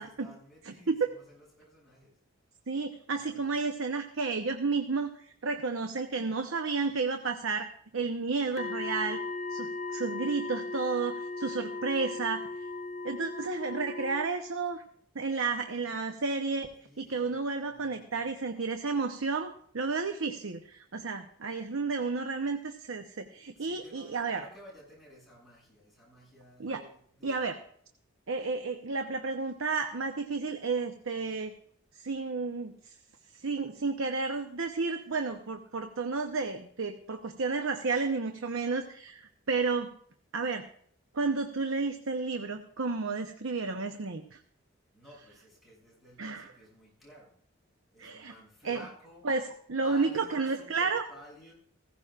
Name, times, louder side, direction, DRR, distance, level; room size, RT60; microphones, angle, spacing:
voice 1, 0.0-2.1 3.1-3.5 16.8-18.9 23.5-27.5 44.9-47.3 47.9-49.3 49.8-51.5, equal, ahead, -6 dB, 6.9 m, -54 dB
voice 2, 0.6-1.1 2.7-7.7 7.9-9.2 9.5-12.5 13.0-14.8 15.1-16.7 17.0-19.5 19.7-24.4 26.6-26.8 27.2-27.6 28.3-31.5 31.9-32.9 33.4-39.9 40.3-40.7 41.1-44.4 46.2-46.5 48.0-48.3 48.6-48.8 49.2-51.0, right 4 dB, 75° right, 6 dB, 0.8 m, -32 dB
sound 1, 8.6-14.3, left 3 dB, 30° left, 0.6 m, -37 dB
16.0 x 15.5 x 2.5 m, 0.62 s
head